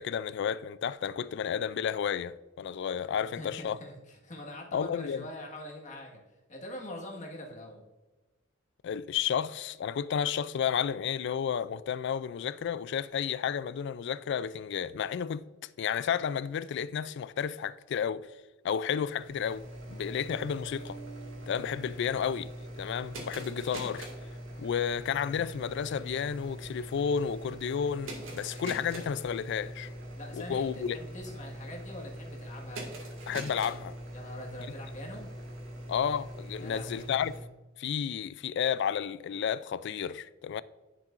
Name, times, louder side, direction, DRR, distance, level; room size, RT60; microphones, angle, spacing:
voice 1, 0.0-3.8 4.7-5.3 8.8-15.4 15.8-18.3 18.6-21.0 21.5-22.5 22.8-24.1 24.6-29.9 30.3-31.0 33.3-34.0 35.9-37.3 37.8-40.6, left 7 dB, 60° left, 0.3 m, -32 dB
voice 2, 3.2-6.2 6.5-7.8 30.1-32.8 34.1-35.3 36.6-37.1, left 1 dB, 40° left, 1.6 m, -43 dB
sound 1, 18.9-37.4, right 1 dB, 80° right, 1.9 m, -43 dB
sound 2, 20.3-22.9, right 4 dB, 30° right, 1.3 m, -50 dB
10.0 x 6.9 x 2.5 m
head